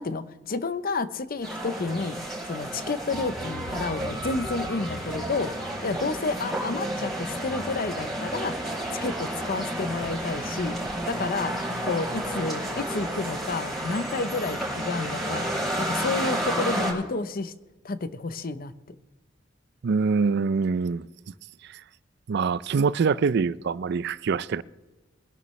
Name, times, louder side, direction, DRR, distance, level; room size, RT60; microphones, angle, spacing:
voice 1, 0.0-2.2 2.4-5.5 5.8-8.6 8.9-10.8 11.1-11.6 11.8-15.5 15.8-17.5 17.8-18.7, left 3 dB, 50° left, 0.7 m, -30 dB
sound 1, 1.4-16.9, right 1 dB, ahead, 5.2 m, -31 dB
sound 2, 3.1-6.2, equal, 75° left, 2.7 m, -42 dB
voice 2, 19.8-21.1 21.6-21.8 22.3-24.6, right 5 dB, 60° right, 0.4 m, -24 dB
22.5 x 11.0 x 3.2 m
head